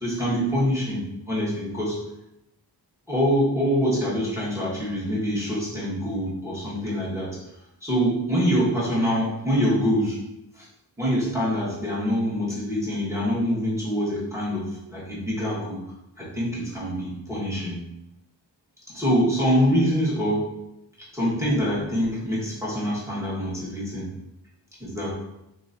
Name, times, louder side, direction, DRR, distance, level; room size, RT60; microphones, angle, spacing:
voice 1, 0.0-2.0 3.1-7.4 7.8-10.2 10.6-10.7 11.0-15.8 16.2-17.8 18.9-20.5 21.1-24.1 24.8-25.1, equal, 5° right, -7 dB, 1.4 m, -25 dB
3.2 x 3.0 x 2.6 m, 0.89 s
wide cardioid pair, 60°, 44 cm